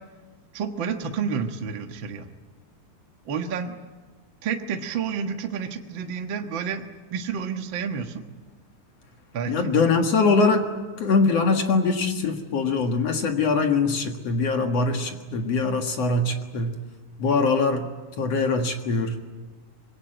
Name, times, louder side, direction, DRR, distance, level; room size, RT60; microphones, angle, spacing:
voice 1, 0.5-2.3 3.3-3.8 4.4-6.8 7.1-8.2 9.3-9.7, right 6 dB, 50° right, 5 dB, 1.6 m, -30 dB
voice 2, 9.5-10.6 11.0-16.7 17.2-17.9 18.2-19.1, left 4 dB, 50° left, 4 dB, 2.5 m, -22 dB
25.5 x 21.5 x 9.1 m, 1.3 s
omnidirectional pair, 4.0 m